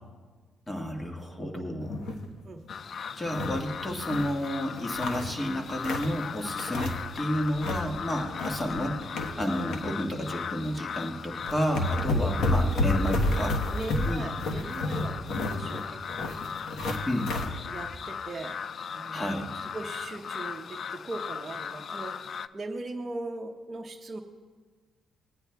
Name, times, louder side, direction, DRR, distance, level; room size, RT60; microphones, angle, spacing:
voice 1, 0.7-2.0 3.2-9.0 9.4-13.6 14.1-14.3 17.1-17.3 19.1-19.5, equal, 20° left, 2 dB, 1.6 m, -31 dB
sound 1, 1.8-2.3 2.6-2.7 3.1-4.3 4.7-6.2 6.6-7.2 7.4-7.9 8.2-9.8 10.2-10.4 11.1-11.2 11.4-17.5, left 2 dB, 75° left, 1.1 m, -30 dB
sound 2, 2.7-22.5, left 7 dB, 50° left, 0.3 m, -38 dB
voice 2, 13.7-16.4 17.2-18.6 18.9-22.2 22.5-24.2, right 2 dB, 30° right, -1 dB, 0.8 m, -40 dB
20.0 x 9.5 x 2.3 m, 1.4 s
cardioid pair, 90°, 0 cm